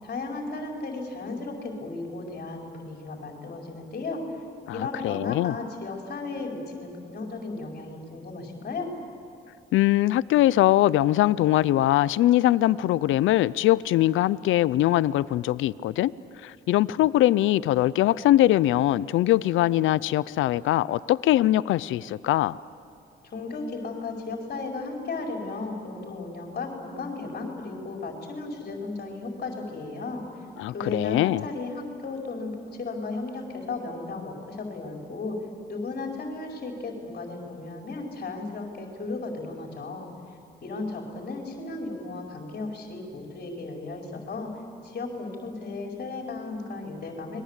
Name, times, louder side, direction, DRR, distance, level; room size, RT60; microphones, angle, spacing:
voice 1, 0.0-4.2 4.7-8.9 23.2-30.3 30.7-35.4 35.7-40.1 40.6-44.5 44.8-47.4, left 3 dB, 50° left, 0 dB, 4.8 m, -35 dB
voice 2, 4.7-5.5 9.7-16.1 16.4-22.6 30.6-31.4, left 14 dB, 80° left, 18 dB, 0.6 m, -22 dB
30.0 x 22.0 x 8.3 m, 2.7 s
cardioid pair, 90°, 20 cm